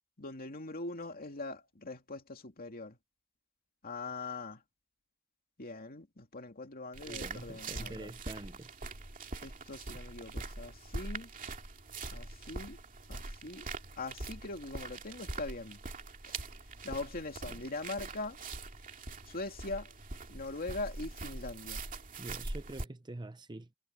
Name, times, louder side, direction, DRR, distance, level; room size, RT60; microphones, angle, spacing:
voice 1, 0.2-3.0 3.8-4.6 5.6-8.1 9.4-11.3 12.1-12.8 13.1-13.7 14.0-15.8 16.8-18.4 19.3-19.9 20.3-21.8, left 2 dB, 45° left, 2.6 m, -42 dB
sound 1, 6.9-22.8, right 3 dB, 40° right, 2.4 m, -43 dB
voice 2, 7.0-8.7 17.4-17.6 22.2-23.7, right 2 dB, 20° right, 0.7 m, -45 dB
head